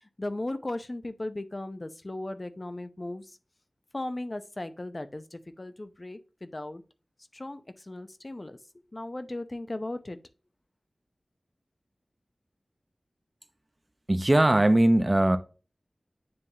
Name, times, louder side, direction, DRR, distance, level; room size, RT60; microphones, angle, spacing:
voice 1, 0.0-3.3 3.9-6.8 7.3-8.6 8.9-10.2, left 2 dB, 35° left, 0.8 m, -37 dB
voice 2, 14.1-15.4, right 1 dB, 30° right, 0.8 m, -20 dB
9.5 x 3.5 x 2.8 m
wide cardioid pair, 75°, 0 cm